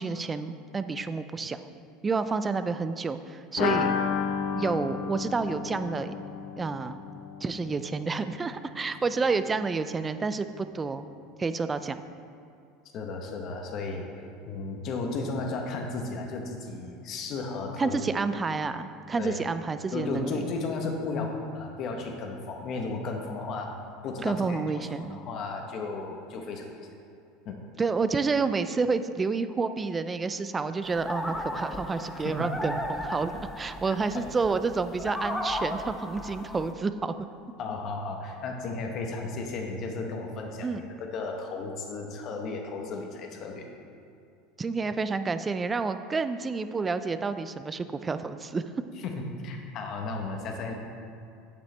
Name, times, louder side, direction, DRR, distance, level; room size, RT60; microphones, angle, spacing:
voice 1, 0.0-1.7 2.0-3.9 4.5-6.1 6.6-7.0 7.4-11.1 11.4-12.0 17.8-20.5 24.2-25.2 27.8-37.1 40.6-40.8 44.6-48.6, right 4 dB, 20° right, 11 dB, 0.3 m, -29 dB
sound 1, 3.6-9.2 9.4-9.5 9.8-9.9, left 6 dB, 70° left, 0.7 m, -32 dB
voice 2, 12.9-14.1 14.4-18.0 19.2-19.3 19.9-23.8 24.0-26.9 27.4-27.6 32.1-32.5 33.8-34.2 37.6-43.7 49.0-50.7, left 3 dB, 45° left, 2 dB, 1.1 m, -34 dB
sound 2, 30.8-36.7, left 1 dB, 5° left, 0.7 m, -35 dB
8.3 x 7.8 x 3.3 m, 2.6 s
supercardioid pair, 125°, 0 cm